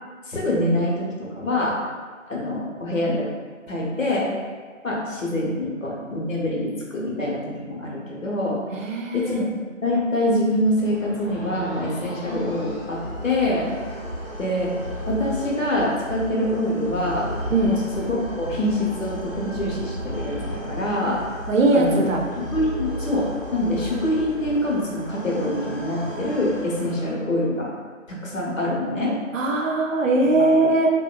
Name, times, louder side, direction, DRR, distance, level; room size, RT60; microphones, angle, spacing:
voice 1, 0.3-1.8 2.3-3.3 3.7-4.3 4.8-8.6 9.1-9.5 9.8-13.7 14.4-14.7 15.1-17.3 17.6-21.2 21.7-22.1 22.4-27.7 28.1-29.2 30.3-30.5, left 1 dB, 70° left, -4 dB, 0.8 m, -25 dB
voice 2, 8.7-9.4 17.5-17.7 21.5-22.2 29.3-30.9, right 2 dB, 70° right, 0 dB, 0.5 m, -20 dB
sound 1, 10.5-27.5, equal, 25° right, 0.6 m, -34 dB
2.8 x 2.1 x 2.3 m, 1.5 s
figure-of-eight pair, 150°, 41 cm